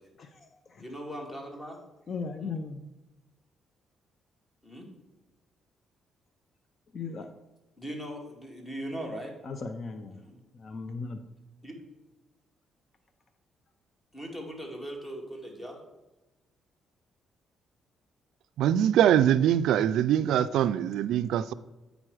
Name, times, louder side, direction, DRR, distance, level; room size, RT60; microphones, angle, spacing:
voice 1, 0.2-0.8 2.1-2.9 6.9-7.3 9.4-10.2 10.5-11.2, left 4 dB, 45° left, 8 dB, 0.6 m, -37 dB
voice 2, 0.8-1.8 2.4-2.5 4.6-4.9 7.8-9.3 10.1-10.4 11.6-11.7 14.1-15.8, equal, 15° left, 1 dB, 2.2 m, -39 dB
voice 3, 18.6-21.5, right 10 dB, 80° right, 14 dB, 0.3 m, -23 dB
8.7 x 5.1 x 4.8 m, 1.0 s
cardioid pair, 90°, 0 cm